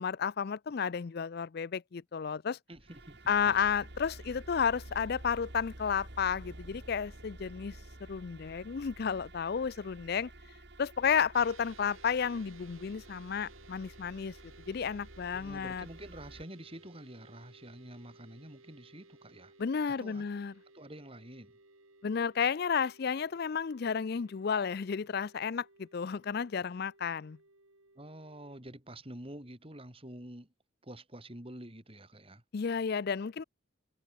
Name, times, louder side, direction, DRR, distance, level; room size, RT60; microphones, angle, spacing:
voice 1, 0.0-2.6 3.3-7.8 8.1-10.3 10.8-14.3 14.7-15.9 19.6-20.5 22.0-27.4 32.5-33.4, left 6 dB, 50° left, 0.4 m, -32 dB
voice 2, 2.7-3.2 3.4-3.7 15.3-19.5 20.0-20.2 20.7-21.5 27.9-30.5 30.8-32.4, right 1 dB, 25° right, 3.3 m, -48 dB
sound 1, 2.7-16.4, right 1 dB, 55° right, 3.3 m, -51 dB
sound 2, 11.3-28.6, right 3 dB, 80° right, 6.8 m, -59 dB
head